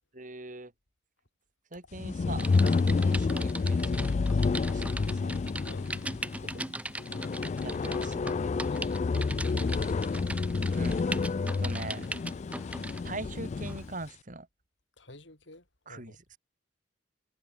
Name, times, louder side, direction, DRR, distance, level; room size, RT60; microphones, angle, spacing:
voice 1, 0.1-0.7 1.7-2.5 2.8-5.3 7.6-8.7 10.7-11.1 11.6-12.1 13.0-14.5 15.9-16.1, right 2 dB, 45° right, 2.5 m, -42 dB
sound 1, 1.9-13.9, left 4 dB, 35° left, 0.3 m, -29 dB
Typing, 2.4-13.1 13.6-13.8, right 2 dB, 5° right, 1.0 m, -40 dB
voice 2, 8.7-10.0 15.0-16.2, left 1 dB, 75° left, 6.9 m, -50 dB
head